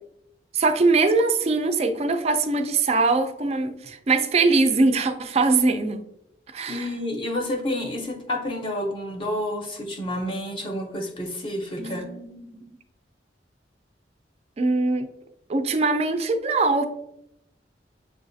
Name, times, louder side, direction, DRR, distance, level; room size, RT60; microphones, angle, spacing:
voice 1, 0.5-6.0 6.5-6.9 11.8-12.7 14.6-15.1 15.5-16.9, right 3 dB, 35° right, 8 dB, 0.3 m, -22 dB
voice 2, 6.7-12.0, left 1 dB, 30° left, 1 dB, 0.6 m, -29 dB
7.0 x 2.4 x 2.5 m, 0.78 s
head